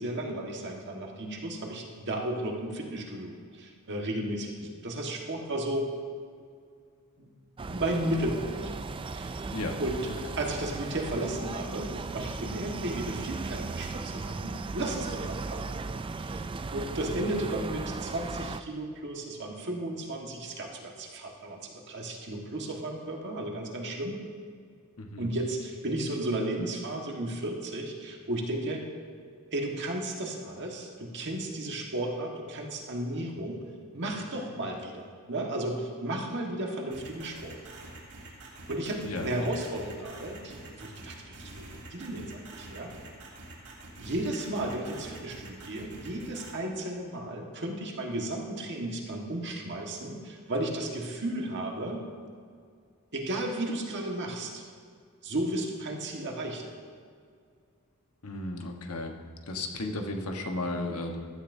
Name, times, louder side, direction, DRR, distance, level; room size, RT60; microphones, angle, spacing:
voice 1, 0.0-5.9 7.2-7.3 7.7-8.6 9.1-9.4 9.8-15.7 16.1-16.4 16.7-24.2 25.2-28.8 29.5-33.6 33.9-37.6 38.7-42.9 44.0-52.0 53.1-54.6 55.2-56.7, right 1 dB, 55° right, 0 dB, 1.6 m, -34 dB
sound 1, 7.6-18.6, right 3 dB, 25° right, 0.3 m, -37 dB
sound 2, 36.9-46.5, right 2 dB, 70° right, 3.4 m, -46 dB
voice 2, 58.2-59.1 59.5-61.3, left 2 dB, 85° left, 3 dB, 1.3 m, -34 dB
15.5 x 13.0 x 2.7 m, 2.2 s
head